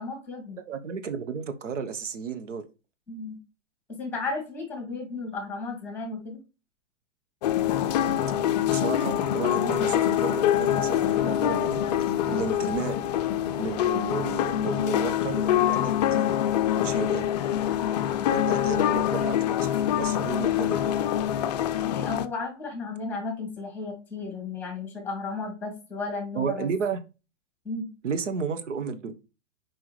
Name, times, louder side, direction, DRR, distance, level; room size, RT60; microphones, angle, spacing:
voice 1, 0.0-0.6 3.1-3.4 4.0-6.4 21.8-26.7 27.6-27.9, left 3 dB, 5° left, 2.6 m, -34 dB
voice 2, 0.6-2.6 8.7-11.8 12.3-13.0 13.6-16.2 16.8-17.3 18.3-19.7 20.0-20.9 26.3-27.0 28.0-29.1, right 5 dB, 75° right, 1.1 m, -32 dB
sound 1, 7.4-22.3, left 11 dB, 35° left, 0.5 m, -25 dB
7.7 x 4.8 x 3.2 m
hypercardioid pair, 130°, 37 cm